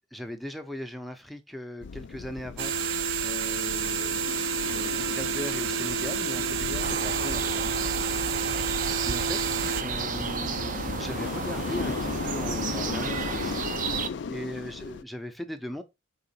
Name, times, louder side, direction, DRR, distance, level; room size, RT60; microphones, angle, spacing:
voice 1, 0.1-4.4 4.7-7.7 9.0-13.6 13.9-15.8, equal, ahead, 0.8 m, -39 dB
sound 1, 1.8-15.0, left 5 dB, 60° left, 0.4 m, -36 dB
sound 2, 2.6-9.8, right 5 dB, 85° right, 0.7 m, -29 dB
sound 3, 6.8-14.1, right 5 dB, 40° right, 0.5 m, -33 dB
5.0 x 3.8 x 5.5 m
head